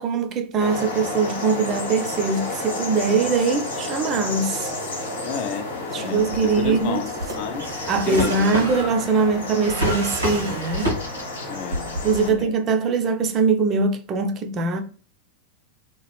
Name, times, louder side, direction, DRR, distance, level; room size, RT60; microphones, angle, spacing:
voice 1, 0.0-4.7 5.9-7.0 7.9-11.0 12.0-14.8, right 4 dB, 30° right, 0.4 m, -22 dB
sound 1, 0.6-12.3, left 2 dB, 70° left, 0.8 m, -31 dB
voice 2, 5.2-5.7 5.9-7.7 8.1-8.6 11.5-12.0 12.3-12.5, left 7 dB, 45° left, 0.4 m, -31 dB
Drawer open or close, 6.2-11.4 11.7-12.5, equal, 85° right, 1.6 m, -28 dB
2.9 x 2.4 x 3.0 m
figure-of-eight pair, 90°, 0 cm